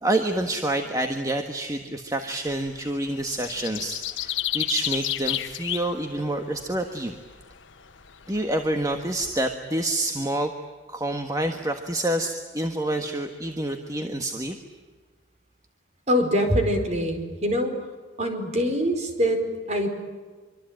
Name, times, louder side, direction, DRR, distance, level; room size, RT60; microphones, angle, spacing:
voice 1, 0.0-7.1 8.3-10.5 10.9-14.6, right 1 dB, 20° right, 5 dB, 1.5 m, -28 dB
sound 1, 2.5-9.5, left 13 dB, 85° left, 1.1 m, -32 dB
voice 2, 16.1-17.7 18.2-19.9, equal, 35° right, 5 dB, 4.8 m, -24 dB
25.0 x 25.0 x 9.0 m, 1.4 s
head